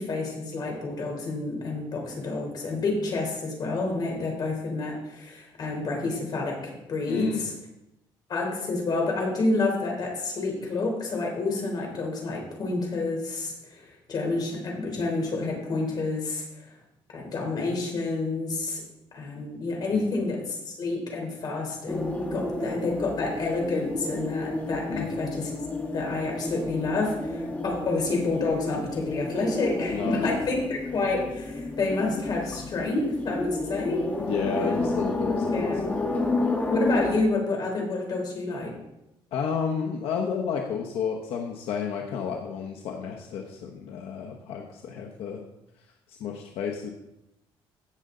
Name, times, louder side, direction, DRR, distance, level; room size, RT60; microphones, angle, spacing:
voice 1, 0.0-7.5 8.3-16.7 17.1-18.8 19.1-25.5 25.9-34.0 34.5-35.0 35.5-35.8 36.7-38.7, left 3 dB, 45° left, 0 dB, 3.7 m, -29 dB
voice 2, 7.1-7.5 19.9-20.2 24.9-25.2 29.9-30.4 34.3-36.0 39.3-45.4 46.1-46.9, left 6 dB, 80° left, 1 dB, 1.1 m, -32 dB
sound 1, 21.9-37.2, left 2 dB, 15° left, 1.5 m, -31 dB
16.0 x 6.6 x 3.9 m, 0.90 s
cardioid pair, 140°, 10 cm